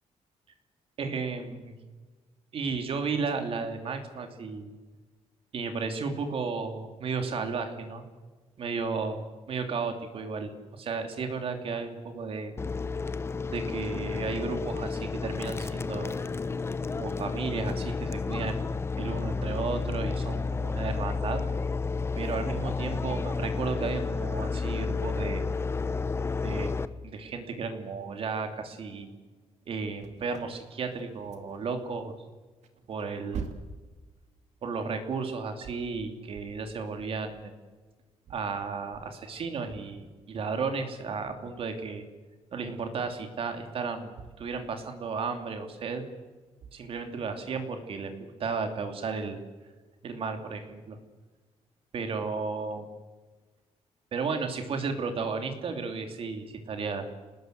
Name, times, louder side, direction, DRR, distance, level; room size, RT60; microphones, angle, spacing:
voice 1, 1.0-1.7 2.5-4.7 5.5-8.0 8.6-12.6 13.5-16.1 16.4-16.5 16.9-18.7 19.0-21.4 22.1-25.5 26.4-26.7 27.0-29.1 29.7-32.1 32.9-33.5 34.6-37.5 38.3-42.0 42.5-46.0 46.7-49.4 50.0-51.0 51.9-52.8 54.1-57.1, right 4 dB, 50° right, 6 dB, 3.0 m, -34 dB
sound 1, 12.6-26.9, left 4 dB, 20° left, 0.8 m, -31 dB
sound 2, 30.0-31.9 32.2-37.7 38.2-40.5 41.2-41.6 42.6-43.4 43.7-45.2 46.0-46.1 46.6-47.1 48.5-48.7, right 5 dB, 75° right, 2.5 m, -47 dB
28.0 x 19.5 x 8.1 m, 1.3 s
wide cardioid pair, 165°, 12 cm